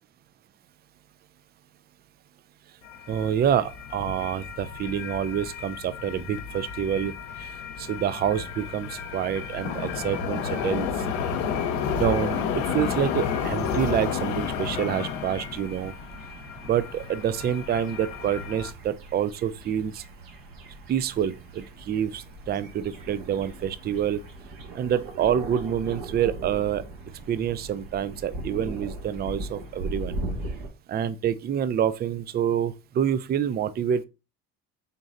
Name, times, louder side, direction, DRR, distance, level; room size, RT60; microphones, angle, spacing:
sound 1, 2.8-18.7, left 6 dB, 80° left, 0.8 m, -32 dB
voice 1, 3.1-7.1 7.4-7.5 7.8-10.9 11.9-12.4 12.7-15.9 16.6-20.0 20.9-24.2 24.7-26.8 27.3-30.2 30.9-34.1, right 9 dB, 25° right, 0.4 m, -27 dB
sound 2, 13.3-30.7, right 2 dB, 60° right, 1.4 m, -40 dB
3.9 x 3.8 x 2.5 m
hypercardioid pair, 70°, 39 cm